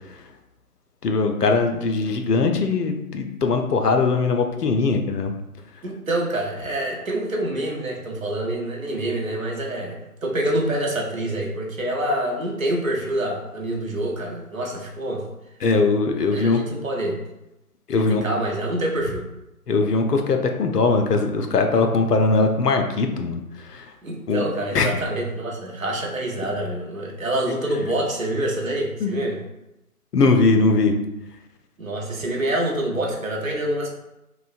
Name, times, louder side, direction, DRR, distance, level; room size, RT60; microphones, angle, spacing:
voice 1, 1.0-5.3 15.6-16.6 17.9-18.2 19.7-23.9 24.3-24.5 24.7-24.9 29.0-29.1 30.1-31.0, left 3 dB, 85° left, 4 dB, 0.6 m, -20 dB
voice 2, 5.8-15.3 16.3-17.2 17.9-19.3 24.0-29.4 31.8-33.9, right 1 dB, 60° right, -1 dB, 0.7 m, -26 dB
3.0 x 2.0 x 2.4 m, 0.89 s
figure-of-eight pair, 160°, 46 cm